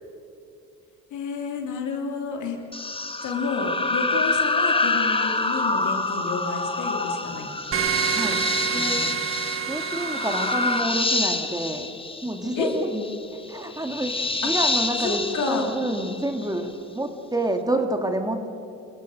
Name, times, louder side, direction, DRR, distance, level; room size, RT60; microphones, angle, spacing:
voice 1, 1.1-2.6 3.2-7.5 8.7-9.2 12.5-12.7 15.0-15.7, left 4 dB, 80° left, 2 dB, 3.2 m, -30 dB
sound 1, 2.7-16.6, left 3 dB, 20° left, 1.4 m, -27 dB
sound 2, 7.7-10.8, right 8 dB, 45° right, 1.6 m, -27 dB
voice 2, 8.7-9.1 9.7-11.9 12.2-13.0 13.3-18.5, right 1 dB, 10° right, 5 dB, 2.1 m, -28 dB
26.0 x 16.0 x 6.6 m, 2.6 s
cardioid pair, 90°, 30 cm